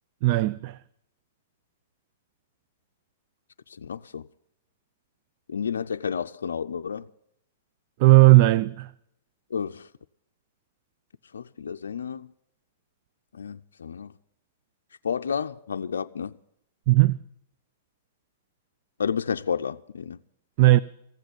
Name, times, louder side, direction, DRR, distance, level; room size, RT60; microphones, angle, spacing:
voice 1, 0.2-0.8 8.0-8.9 16.9-17.2 20.6-20.8, right 19 dB, 50° right, 0.4 m, -16 dB
voice 2, 3.8-4.2 5.5-7.1 9.5-9.9 11.3-12.3 13.3-14.1 15.0-16.3 19.0-20.2, left 7 dB, 90° left, 0.4 m, -31 dB
15.0 x 8.0 x 8.5 m
hypercardioid pair, 125°, 0 cm